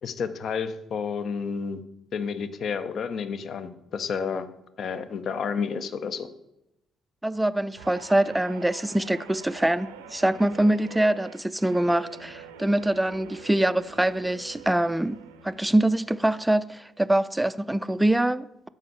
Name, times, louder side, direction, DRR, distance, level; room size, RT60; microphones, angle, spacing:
voice 1, 0.0-1.8 2.1-4.5 4.8-6.3, left 6 dB, 50° left, 0.6 m, -30 dB
voice 2, 7.2-18.7, right 1 dB, 10° right, 0.4 m, -24 dB
Guitar, 7.8-16.4 16.7-17.1, right 7 dB, 75° right, 0.6 m, -46 dB
7.4 x 5.5 x 7.3 m
figure-of-eight pair, 45°, 0 cm